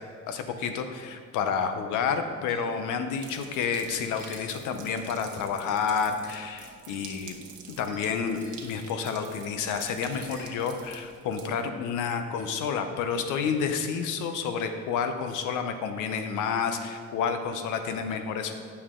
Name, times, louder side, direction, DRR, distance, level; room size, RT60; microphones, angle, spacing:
voice 1, 0.3-7.4 7.8-18.5, left 6 dB, 90° left, 7 dB, 0.7 m, -30 dB
sound 1, 2.5-2.6 4.2-4.5 6.1-6.4 7.8-8.5 10.1-11.0 12.4-12.5 13.4-13.5 14.3-14.4 15.3-15.4, left 2 dB, 70° left, 2.2 m, -50 dB
sound 2, 3.2-11.5, right 6 dB, 85° right, 1.1 m, -48 dB
8.6 x 7.0 x 3.7 m, 2.1 s
cardioid pair, 90°, 30 cm